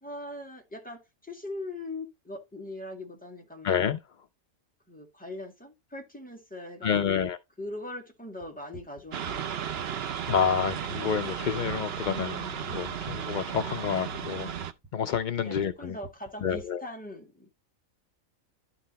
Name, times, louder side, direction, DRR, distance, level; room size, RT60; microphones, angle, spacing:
voice 1, 0.0-3.7 4.9-7.3 7.6-9.8 15.4-17.5, left 2 dB, 5° left, 1.7 m, -41 dB
voice 2, 3.6-4.0 6.8-7.4 10.3-14.5 14.9-16.0 16.4-16.8, left 7 dB, 70° left, 0.4 m, -28 dB
sound 1, 8.4-10.9 11.2-13.2 13.6-16.7, right 4 dB, 15° right, 0.8 m, -46 dB
sound 2, 9.1-14.7, right 8 dB, 55° right, 0.9 m, -34 dB
11.0 x 4.0 x 4.1 m
omnidirectional pair, 1.4 m